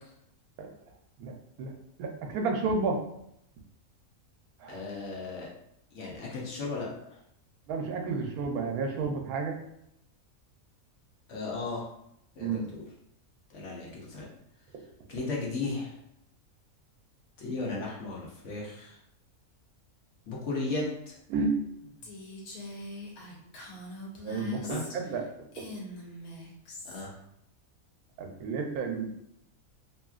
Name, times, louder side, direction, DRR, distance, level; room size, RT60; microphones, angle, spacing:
voice 1, 1.2-1.7 2.0-3.0 4.6-4.8 7.7-9.6 12.4-12.7 21.3-21.6 24.2-25.2 28.2-29.1, right 4 dB, 90° right, 2 dB, 1.1 m, -31 dB
voice 2, 4.7-5.5 5.9-6.9 11.3-11.9 12.4-12.8 13.5-14.3 15.1-15.9 17.4-19.0 20.3-21.2 24.7-24.8 26.8-27.1, left 3 dB, 60° left, -3 dB, 1.0 m, -35 dB
Female speech woman speaking, 22.0-25.2 25.5-27.1, left 1 dB, 85° left, 1.2 m, -43 dB
2.8 x 2.7 x 2.3 m, 0.76 s
omnidirectional pair, 1.5 m